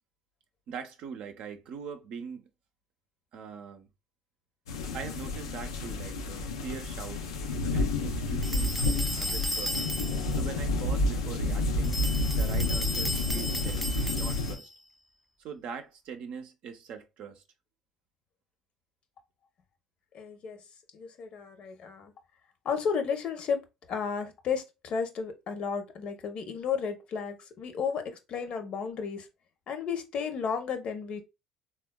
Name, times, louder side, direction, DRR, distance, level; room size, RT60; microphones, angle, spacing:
voice 1, 0.7-2.4 3.3-3.9 4.9-7.3 7.7-8.8 9.2-9.8 10.4-12.0 12.3-14.7 15.4-17.4, right 6 dB, 60° right, 0.6 m, -42 dB
sound 1, 4.7-14.5, left 2 dB, 85° left, 0.4 m, -30 dB
sound 2, 8.4-10.4 11.8-14.7, equal, ahead, 0.4 m, -35 dB
voice 2, 20.1-20.6 20.9-22.1 22.6-29.3 29.7-31.2, left 6 dB, 55° left, 0.7 m, -33 dB
3.6 x 2.3 x 2.2 m
hypercardioid pair, 65°, 2 cm